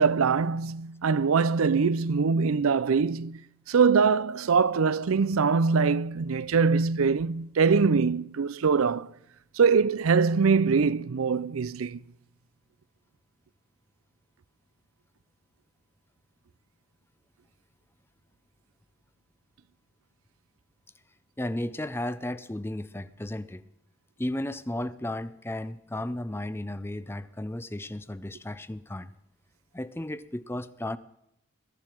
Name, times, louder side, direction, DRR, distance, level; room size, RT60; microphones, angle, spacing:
voice 1, 0.0-9.1 9.6-12.0, right 5 dB, 90° right, 0.5 m, -23 dB
voice 2, 21.4-23.6 24.2-29.1 29.7-31.0, left 1 dB, 10° left, 0.5 m, -34 dB
22.0 x 12.5 x 4.6 m
head